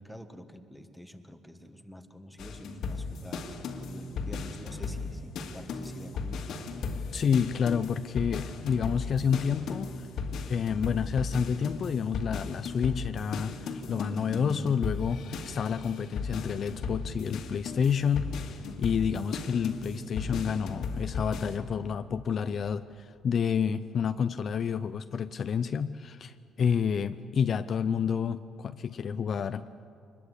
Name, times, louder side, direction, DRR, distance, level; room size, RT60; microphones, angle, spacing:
voice 1, 0.0-6.4, equal, ahead, 6 dB, 1.6 m, -47 dB
sound 1, 2.4-21.6, left 4 dB, 70° left, 2.2 m, -36 dB
voice 2, 7.1-9.9 10.5-29.9, left 7 dB, 45° left, 11 dB, 0.6 m, -29 dB
24.5 x 21.0 x 8.3 m, 2.5 s
cardioid pair, 115°, 0 cm